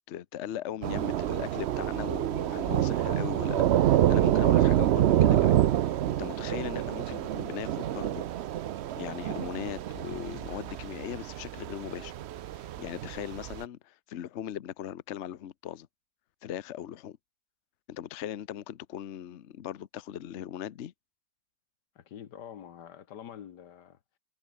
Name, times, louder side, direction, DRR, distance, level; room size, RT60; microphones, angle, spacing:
voice 1, 0.0-8.3 9.0-12.1 12.6-15.9 16.4-17.2 17.9-20.9, left 10 dB, 55° left, 0.9 m, -39 dB
Thunder / Rain, 0.8-13.6, right 12 dB, 75° right, 0.6 m, -27 dB
voice 2, 1.0-1.4 22.0-24.0, left 9 dB, 85° left, 1.8 m, -47 dB
omnidirectional pair, 1.8 m